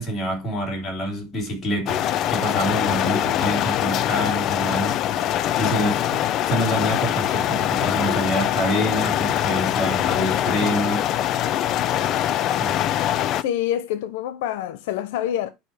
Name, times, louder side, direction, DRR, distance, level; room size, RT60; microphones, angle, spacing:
voice 1, 0.0-5.0 5.6-6.2 6.4-11.1 12.5-12.8, equal, 20° left, 3.3 m, -26 dB
sound 1, 1.9-13.4, left 11 dB, 40° left, 0.5 m, -23 dB
voice 2, 13.4-15.5, left 11 dB, 85° left, 0.7 m, -26 dB
11.0 x 4.9 x 3.3 m
cardioid pair, 150°, 0 cm